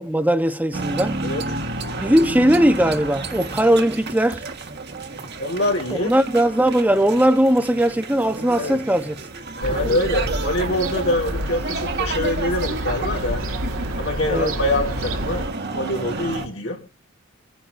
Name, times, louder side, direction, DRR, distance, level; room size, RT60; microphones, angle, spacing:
voice 1, 0.0-1.2 2.0-4.4 5.9-9.1 9.7-9.8 14.3-14.5, right 1 dB, 10° right, 0.8 m, -19 dB
sound 1, 0.7-16.5, right 3 dB, 55° right, 1.5 m, -31 dB
voice 2, 5.4-6.1 8.6-8.8 9.6-13.5 14.0-15.5 15.7-16.8, left 1 dB, 75° left, 3.8 m, -24 dB
Fowl / Gull seagull, 9.6-15.5, right 1 dB, 80° right, 1.7 m, -29 dB
27.0 x 10.0 x 2.6 m
head